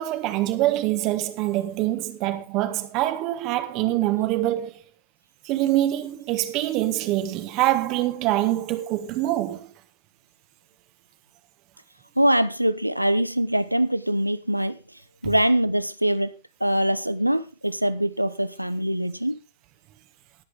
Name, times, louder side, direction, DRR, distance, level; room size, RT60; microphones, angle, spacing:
voice 1, 0.0-4.7 5.4-9.7, right 15 dB, 40° right, 1.4 m, -24 dB
voice 2, 12.2-14.8 15.2-16.3 16.6-19.4, right 1 dB, 90° right, 0.7 m, -23 dB
18.0 x 7.8 x 3.6 m
figure-of-eight pair, 90°, 0 cm